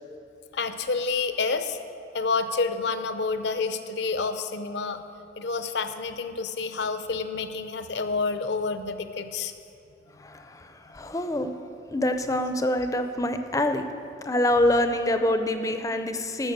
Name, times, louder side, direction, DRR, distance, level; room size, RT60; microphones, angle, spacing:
voice 1, 0.5-1.8 2.1-5.0 5.4-9.5, left 4 dB, 65° left, 9 dB, 0.6 m, -28 dB
voice 2, 10.2-11.5 11.9-13.9 14.2-16.5, left 1 dB, 20° left, 7 dB, 0.5 m, -26 dB
11.5 x 7.1 x 6.6 m, 2.6 s
head